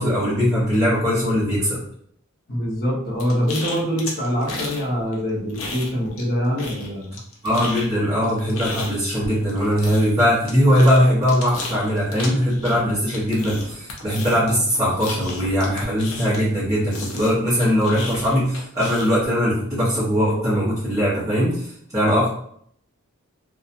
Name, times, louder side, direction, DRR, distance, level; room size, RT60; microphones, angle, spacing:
voice 1, 0.0-1.8 7.4-21.7 21.9-22.3, equal, 15° right, -11 dB, 0.9 m, -20 dB
voice 2, 2.5-7.2, equal, 45° left, -4 dB, 0.8 m, -24 dB
sound 1, 3.2-4.8 5.1-6.3 6.6-16.6 16.9-19.3, left 3 dB, 75° left, 0.6 m, -33 dB
2.8 x 2.3 x 2.5 m, 0.66 s
head